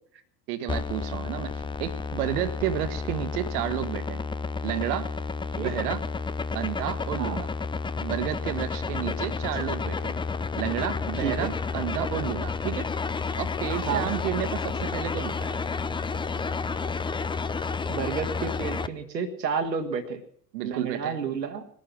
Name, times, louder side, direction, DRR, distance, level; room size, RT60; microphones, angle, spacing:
voice 1, 0.5-4.3 4.6-5.1 5.6-6.0 6.5-7.5 8.0-10.2 10.6-12.9 13.4-15.6 20.5-21.2, right 11 dB, 60° right, 12 dB, 1.4 m, -31 dB
sound 1, 0.7-18.9, left 4 dB, 10° left, 0.5 m, -31 dB
voice 2, 11.2-11.5 13.8-14.1 17.9-20.2 20.6-21.6, right 6 dB, 80° right, 7 dB, 1.6 m, -30 dB
19.5 x 11.5 x 5.9 m, 0.63 s
figure-of-eight pair, 60°, 50 cm